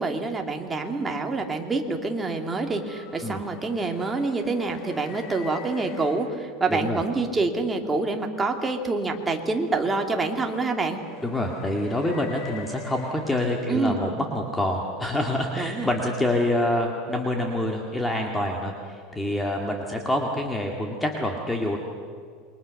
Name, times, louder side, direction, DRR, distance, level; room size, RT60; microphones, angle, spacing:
voice 1, 0.0-11.0 13.7-14.0 15.5-15.9, right 3 dB, 15° right, 3 dB, 2.5 m, -27 dB
sound 1, 1.8-7.2 8.6-13.9, left 6 dB, 45° left, 4.9 m, -45 dB
voice 2, 6.7-7.0 11.2-21.8, left 1 dB, 10° left, 1 dB, 2.1 m, -26 dB
28.0 x 22.5 x 6.6 m, 2.1 s
supercardioid pair, 145°, 0 cm